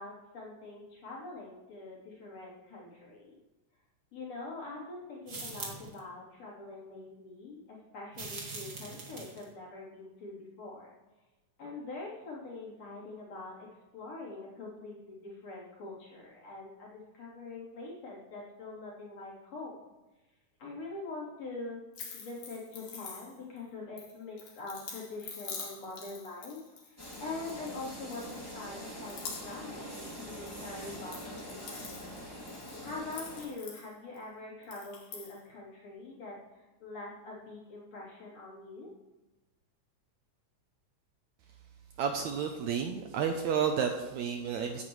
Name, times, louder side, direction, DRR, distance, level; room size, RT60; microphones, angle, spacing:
voice 1, 0.0-3.4 4.1-10.9 11.6-13.7 13.9-19.8 20.6-21.8 22.1-32.2 32.8-38.9, left 3 dB, 50° left, -6 dB, 4.5 m, -44 dB
sound 1, 5.3-6.0 8.1-9.5, right 3 dB, 35° right, 2.0 m, -42 dB
sound 2, 21.9-23.6 24.0-27.8 28.1-28.7 29.0-29.7 29.9-30.6 30.9-34.2 34.6-35.4, left 5 dB, 80° left, 3.8 m, -46 dB
sound 3, 27.0-33.5, equal, 10° left, 1.9 m, -44 dB
voice 2, 42.0-44.8, right 7 dB, 75° right, 5 dB, 1.8 m, -31 dB
16.5 x 9.7 x 3.2 m, 1.1 s
omnidirectional pair, 3.8 m